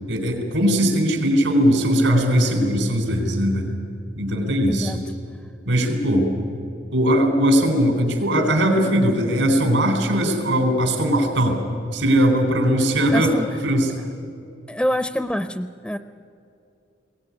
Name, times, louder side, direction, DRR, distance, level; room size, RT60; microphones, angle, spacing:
voice 1, 0.1-3.7 4.2-5.0 5.7-6.3 6.9-11.6 11.9-13.3 13.6-14.0, equal, 85° right, 4 dB, 3.7 m, -19 dB
voice 2, 4.7-5.0 13.0-13.5 14.7-16.0, equal, 5° left, 11 dB, 0.4 m, -26 dB
21.5 x 17.5 x 9.7 m, 2.6 s
head